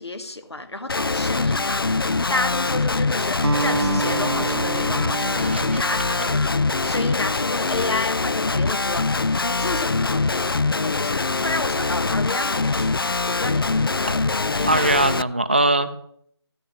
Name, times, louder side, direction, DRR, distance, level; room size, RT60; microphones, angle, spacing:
voice 1, 0.0-6.5 6.8-10.5 10.8-13.0 13.3-14.9, left 2 dB, 75° left, 7 dB, 2.1 m, -31 dB
Guitar, 0.9-15.2, left 3 dB, 55° left, 0.4 m, -23 dB
Acoustic guitar, 3.4-7.9, right 3 dB, 65° right, 0.5 m, -30 dB
voice 2, 5.3-5.8 14.6-15.9, right 2 dB, 25° right, 9 dB, 0.6 m, -21 dB
14.5 x 6.2 x 7.8 m, 0.67 s
figure-of-eight pair, 175°, 14 cm